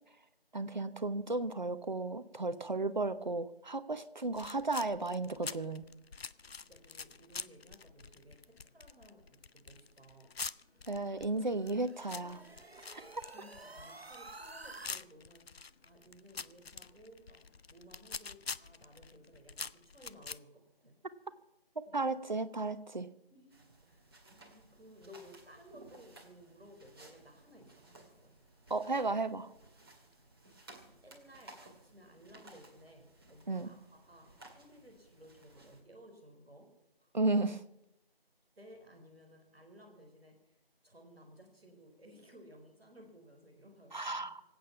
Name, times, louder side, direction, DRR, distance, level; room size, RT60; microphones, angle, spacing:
voice 1, 0.5-5.9 10.9-12.4 21.8-23.1 28.7-29.5 33.5-33.7 37.1-37.6 43.9-44.4, right 2 dB, 50° right, 12 dB, 0.9 m, -34 dB
sound 1, 4.4-20.4, left 5 dB, 80° left, 0.6 m, -46 dB
voice 2, 6.5-10.3 12.9-21.0 21.8-22.1 23.3-24.1 24.4-28.3 30.7-36.7 37.0-37.1 38.5-40.5 40.8-44.3, equal, ahead, -14 dB, 1.7 m, -58 dB
sound 2, 10.9-14.9, right 2 dB, 80° right, 1.3 m, -51 dB
sound 3, 23.5-35.8, right 2 dB, 25° right, 2.1 m, -58 dB
25.0 x 8.8 x 5.7 m, 0.87 s
figure-of-eight pair, 165°, 30 cm